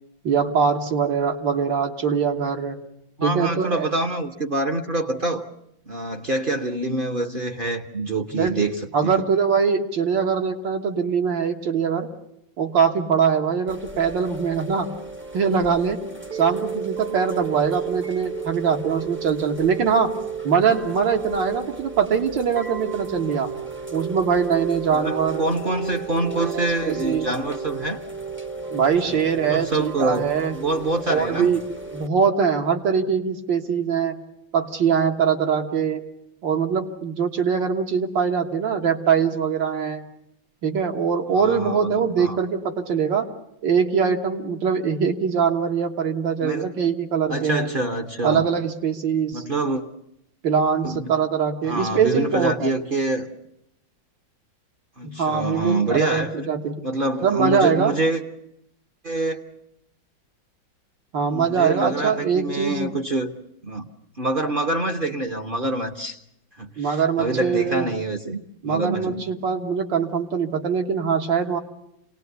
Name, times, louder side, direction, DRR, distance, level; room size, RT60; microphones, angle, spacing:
voice 1, 0.2-2.8 3.2-3.9 8.3-8.6 8.9-12.1 12.6-14.9 15.3-16.0 16.3-20.2 20.4-23.5 23.9-25.4 26.1-27.3 28.7-30.5 31.1-31.6 31.9-34.2 34.5-36.0 36.4-40.0 40.6-43.3 43.6-47.7 48.2-49.4 50.4-52.7 55.0-56.8 57.2-58.0 61.1-62.9 66.8-67.9 68.6-71.6, right 6 dB, 75° right, 3 dB, 2.2 m, -22 dB
voice 2, 3.2-5.5 5.9-9.2 24.9-28.0 29.1-31.5 41.3-42.4 46.4-46.7 47.3-48.5 49.3-49.8 50.8-51.2 51.6-53.3 55.0-56.5 56.8-58.2 59.0-59.4 61.3-63.3 63.6-63.9 64.2-66.2 66.6-69.2, right 2 dB, 40° right, 5 dB, 0.8 m, -26 dB
Chime / Rain, 13.7-32.1, right 5 dB, 10° right, 0.6 m, -33 dB
27.0 x 18.5 x 8.2 m, 0.81 s
omnidirectional pair, 2.1 m